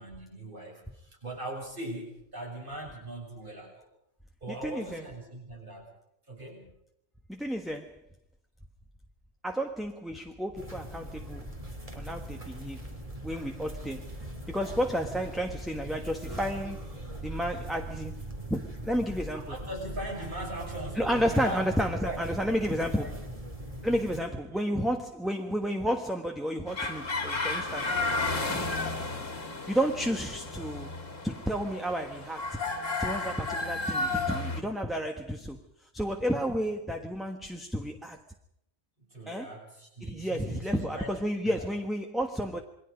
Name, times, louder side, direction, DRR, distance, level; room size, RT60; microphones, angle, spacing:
voice 1, 0.0-3.9 4.4-5.9 6.3-6.7 19.3-22.2 23.0-23.2 24.3-24.4 28.4-28.9 39.1-41.1 41.4-41.7, right 1 dB, 45° right, 7.6 m, -40 dB
voice 2, 4.6-5.0 7.3-8.0 9.4-11.5 11.9-12.9 13.2-14.1 14.5-16.9 17.2-18.2 18.5-19.5 21.0-23.2 23.8-28.0 29.7-30.9 31.2-32.6 33.0-35.6 35.9-38.2 39.3-39.5 40.0-42.6, equal, ahead, 1.3 m, -31 dB
sound 1, 10.5-24.2, right 1 dB, 30° right, 3.1 m, -41 dB
sound 2, 26.7-34.6, left 3 dB, 85° left, 2.7 m, -33 dB
28.0 x 22.5 x 5.2 m
omnidirectional pair, 1.3 m